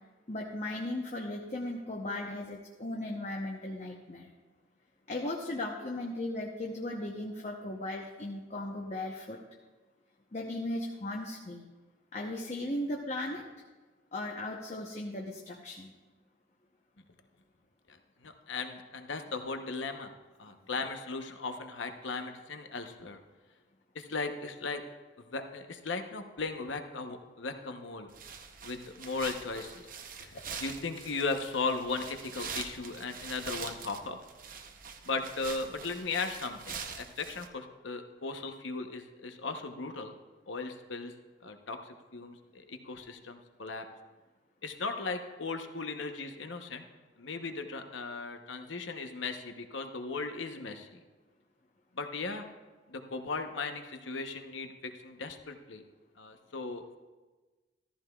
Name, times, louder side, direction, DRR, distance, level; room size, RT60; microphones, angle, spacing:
voice 1, 0.3-4.3 5.1-9.4 10.3-11.6 12.1-13.4 14.1-15.9, left 1 dB, 35° left, 0 dB, 0.8 m, -37 dB
voice 2, 18.2-20.1 20.4-23.2 23.9-24.8 25.2-28.1 28.6-29.9 30.2-34.2 35.0-40.1 40.5-41.1 41.4-43.8 44.6-46.9 47.2-51.0 51.9-52.5 52.9-55.8 56.2-57.0, left 3 dB, 75° left, 6 dB, 0.9 m, -37 dB
sound 1, 28.1-37.5, right 6 dB, 45° right, 0.7 m, -44 dB
14.5 x 14.0 x 2.3 m, 1.3 s
head